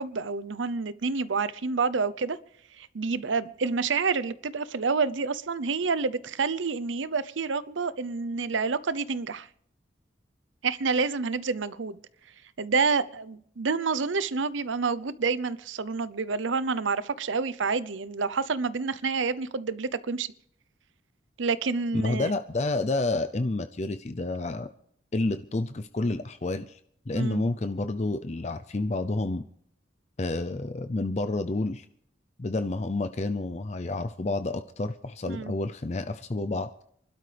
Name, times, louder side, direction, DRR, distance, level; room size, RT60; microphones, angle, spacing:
voice 1, 0.0-2.4 2.8-9.5 10.6-12.0 12.6-20.3 21.4-22.3 27.1-27.4 35.3-35.5, right 4 dB, 85° right, 0.7 m, -28 dB
voice 2, 21.9-24.7 25.1-26.8 27.1-29.4 30.2-31.9 32.4-36.7, left 2 dB, 35° left, 0.5 m, -29 dB
27.0 x 12.5 x 3.4 m
head